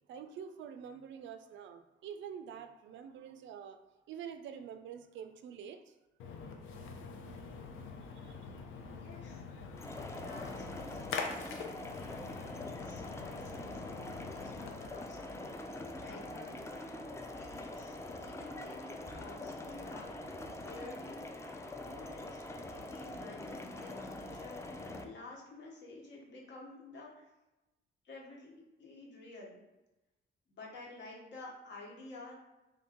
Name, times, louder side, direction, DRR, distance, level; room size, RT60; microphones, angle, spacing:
voice 1, 0.1-3.8 4.1-5.9 8.1-8.4, right 8 dB, 70° right, 9 dB, 0.4 m, -46 dB
Splash splatter, 6.2-14.9, left 4 dB, 80° left, 0.6 m, -44 dB
voice 2, 9.0-9.4 10.1-13.8 14.4-15.6 16.0-16.7 17.3-20.2 20.6-21.2 21.8-22.4 22.7-27.3 28.0-28.5 28.8-29.6 30.5-32.3, left 2 dB, 65° left, -2 dB, 1.2 m, -51 dB
sound 1, 9.8-25.0, left 2 dB, 15° left, 0.4 m, -44 dB
3.2 x 2.6 x 3.6 m, 1.0 s
cardioid pair, 90°, 20 cm